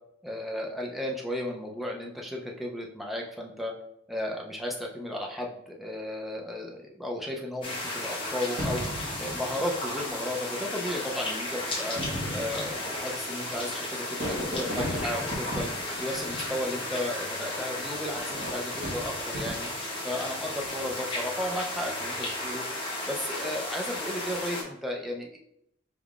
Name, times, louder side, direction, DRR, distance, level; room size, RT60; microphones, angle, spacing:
voice 1, 0.2-3.7 4.1-8.8 9.2-12.0 12.3-15.7 16.0-19.7 20.0-22.6 23.1-25.4, left 1 dB, ahead, -1 dB, 0.5 m, -34 dB
sound 1, 7.6-24.6, left 1 dB, 25° left, 0.9 m, -34 dB
Fireworks, 8.6-10.2 11.0-11.1 11.8-17.1 18.2-19.9 20.5-21.0, equal, 50° right, 1.1 m, -37 dB
4.5 x 3.6 x 2.4 m, 0.77 s
head